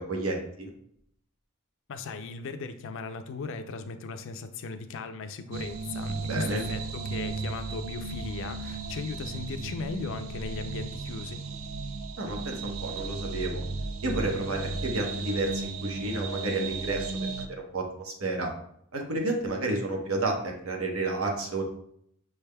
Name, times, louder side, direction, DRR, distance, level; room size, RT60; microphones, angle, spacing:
voice 1, 0.1-0.7 6.2-6.6 12.2-13.6 14.0-17.1 17.4-18.5 18.9-21.6, right 2 dB, 90° right, 1 dB, 0.9 m, -31 dB
voice 2, 1.9-11.4, left 4 dB, 65° left, 8 dB, 0.4 m, -37 dB
sound 1, 5.5-17.5, right 3 dB, 70° right, 0.4 m, -35 dB
6.2 x 3.4 x 2.2 m, 0.69 s
head